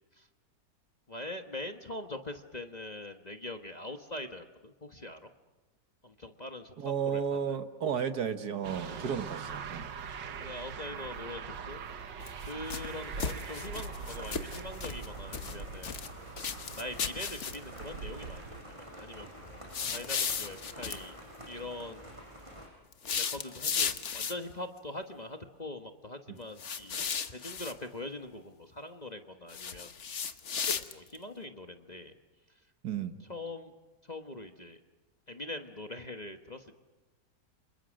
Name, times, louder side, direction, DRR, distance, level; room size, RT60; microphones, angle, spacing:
voice 1, 1.1-5.3 6.0-7.6 8.8-9.2 10.4-11.8 12.4-15.9 16.2-16.3 16.8-19.6 19.9-21.2 21.5-22.0 23.1-29.9 30.7-32.1 33.3-33.7 34.0-34.8 35.3-36.8, left 1 dB, 25° left, 6 dB, 1.3 m, -43 dB
voice 2, 6.8-9.8 32.8-33.2, right 7 dB, 65° right, 9 dB, 1.8 m, -33 dB
sound 1, 8.6-18.6, right 6 dB, 90° right, 2.0 m, -42 dB
sound 2, 12.2-12.9 13.2-15.1 15.3-16.1 16.4-17.8 19.7-21.0 22.9-24.5 26.6-27.7 29.5-31.2, left 6 dB, 45° left, 1.3 m, -35 dB
sound 3, 12.8-22.7, equal, 15° right, 6.4 m, -48 dB
29.5 x 27.0 x 6.4 m, 1.2 s
omnidirectional pair, 1.9 m